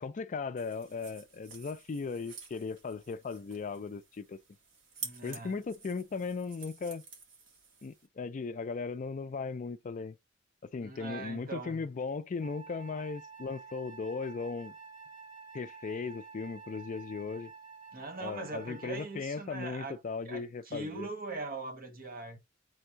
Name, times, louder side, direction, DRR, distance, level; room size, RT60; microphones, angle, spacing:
voice 1, 0.0-4.4 5.2-7.0 7.8-10.2 10.7-14.7 15.5-17.5 18.2-21.1, left 4 dB, 40° left, 0.4 m, -37 dB
sound 1, 0.6-8.1, right 4 dB, 70° right, 1.3 m, -49 dB
voice 2, 5.0-5.6 10.8-11.9 17.9-22.4, right 3 dB, 50° right, 0.9 m, -41 dB
Wind instrument woodwind instrument, 12.4-19.2, right 5 dB, 25° right, 1.1 m, -50 dB
3.4 x 2.7 x 4.5 m
head